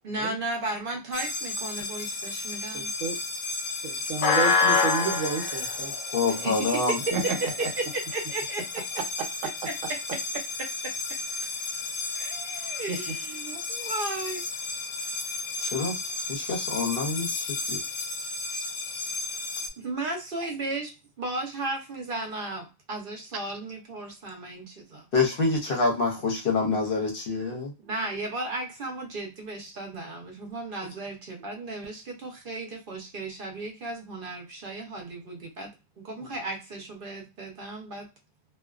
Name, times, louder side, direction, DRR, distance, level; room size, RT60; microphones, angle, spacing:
voice 1, 0.0-2.9 6.4-7.1 7.8-8.8 9.6-9.7 10.6-10.9 12.1-14.4 19.8-25.1 27.8-35.7 36.0-38.1, right 2 dB, 50° right, 2 dB, 0.8 m, -35 dB
sound 1, 1.1-19.7, left 4 dB, 85° left, 1.0 m, -31 dB
voice 2, 2.7-3.2 3.8-5.9 6.3-6.4 6.8-7.7 9.0-9.9 12.7-13.2, right 5 dB, 85° right, 5 dB, 1.0 m, -32 dB
voice 3, 6.1-7.0 15.6-16.0 16.3-17.8 25.1-27.7, left 3 dB, 55° left, 0 dB, 0.8 m, -26 dB
2.4 x 2.2 x 2.3 m, 0.27 s
omnidirectional pair, 1.3 m